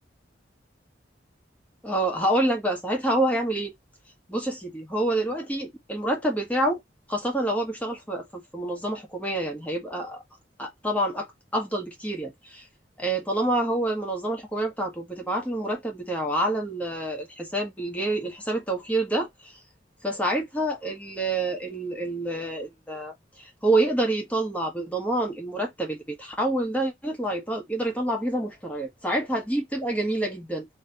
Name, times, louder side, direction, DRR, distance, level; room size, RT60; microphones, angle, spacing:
voice 1, 1.8-3.7 4.3-6.8 7.1-10.2 10.6-11.3 11.5-12.7 13.0-19.5 20.0-30.6, right 1 dB, 10° left, 1.5 m, -27 dB
3.3 x 3.3 x 4.1 m
head